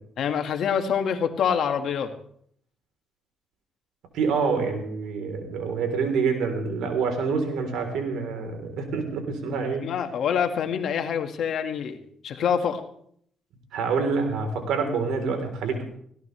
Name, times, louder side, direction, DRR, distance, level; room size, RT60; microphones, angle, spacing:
voice 1, 0.2-2.1 9.8-12.8, left 7 dB, 70° left, 6 dB, 1.9 m, -26 dB
voice 2, 4.1-9.8 13.7-15.8, right 5 dB, 85° right, 5 dB, 3.8 m, -27 dB
20.0 x 16.5 x 3.4 m, 0.65 s
cardioid pair, 90°, 0 cm